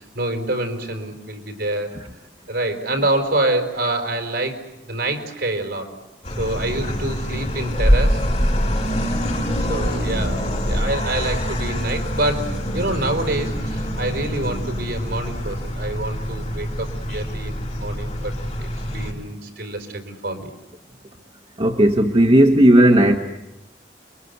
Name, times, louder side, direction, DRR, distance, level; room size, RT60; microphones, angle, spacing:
voice 1, 0.0-1.9 2.5-4.6 4.9-5.9 6.4-8.2 9.6-18.3 18.6-20.5, right 2 dB, 65° right, 5 dB, 5.0 m, -26 dB
sound 1, 6.2-19.1, equal, 40° left, 7.6 m, -24 dB
voice 2, 21.6-23.2, right 1 dB, 35° right, 3 dB, 1.5 m, -14 dB
30.0 x 23.5 x 8.2 m, 0.92 s
head